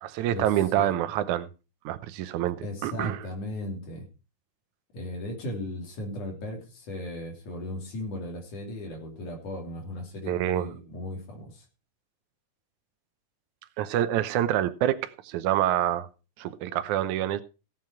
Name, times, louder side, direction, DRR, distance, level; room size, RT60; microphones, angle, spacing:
voice 1, 0.0-1.5 1.9-3.3 10.3-10.7 13.8-16.1 16.4-17.4, right 12 dB, 85° right, 2.2 m, -27 dB
voice 2, 2.6-4.0 4.9-11.6, left 1 dB, 90° left, 4.6 m, -36 dB
16.5 x 7.6 x 4.5 m
omnidirectional pair, 3.4 m